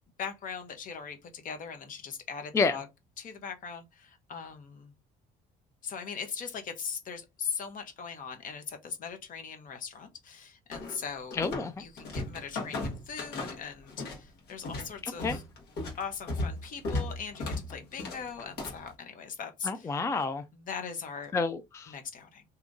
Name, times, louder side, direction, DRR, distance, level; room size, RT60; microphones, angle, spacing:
voice 1, 0.2-2.9 3.2-4.9 5.8-11.4 11.8-15.4 16.0-19.9 20.5-21.3 21.9-22.4, left 6 dB, 50° left, 0.9 m, -40 dB
sound 1, 10.7-11.7 12.0-14.2 14.5-18.9, left 2 dB, 75° left, 1.4 m, -35 dB
voice 2, 11.4-11.7 15.0-15.4 19.6-20.4 21.3-21.9, left 4 dB, 15° left, 0.3 m, -29 dB
2.9 x 2.5 x 3.6 m
cardioid pair, 110°, 17 cm